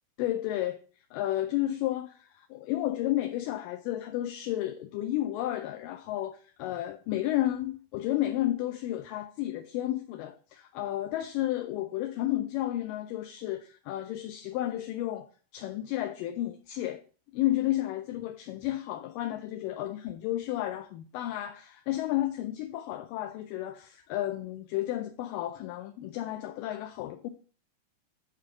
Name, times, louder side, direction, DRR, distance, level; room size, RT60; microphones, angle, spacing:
voice 1, 0.2-0.8 1.1-15.3 15.5-17.0 17.3-27.3, left 14 dB, 80° left, 2.1 m, -32 dB
8.3 x 3.3 x 6.1 m
omnidirectional pair, 4.1 m